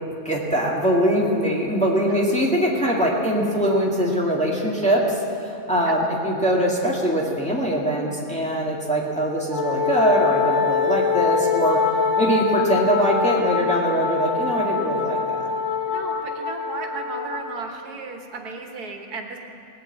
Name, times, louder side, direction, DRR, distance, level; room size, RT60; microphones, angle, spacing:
voice 1, 0.2-11.8 12.2-15.5, equal, 5° left, -4 dB, 2.0 m, -22 dB
Wind instrument woodwind instrument, 9.5-17.5, left 5 dB, 75° left, 2.6 m, -24 dB
voice 2, 15.9-19.4, right 4 dB, 85° right, 3 dB, 1.8 m, -35 dB
18.5 x 8.5 x 8.3 m, 2.7 s
omnidirectional pair, 1.6 m